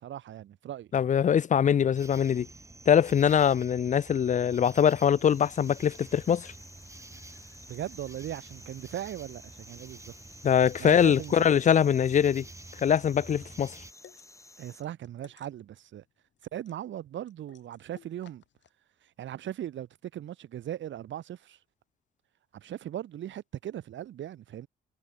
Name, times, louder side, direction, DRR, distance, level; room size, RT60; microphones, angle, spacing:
voice 1, 0.0-0.9 7.7-10.1 10.8-11.5 14.6-16.0 16.5-18.4 19.0-21.6 22.5-24.7, right 11 dB, 70° right, 2.3 m, -38 dB
voice 2, 0.9-2.5 2.9-6.5 10.4-12.4 12.8-13.7, left 8 dB, 40° left, 0.5 m, -23 dB
sound 1, 2.0-13.9, right 2 dB, 15° right, 1.9 m, -49 dB
sound 2, 5.1-14.8, left 2 dB, 15° left, 4.0 m, -54 dB
sound 3, 5.7-18.7, left 10 dB, 65° left, 5.3 m, -63 dB
cardioid pair, 90°, 20 cm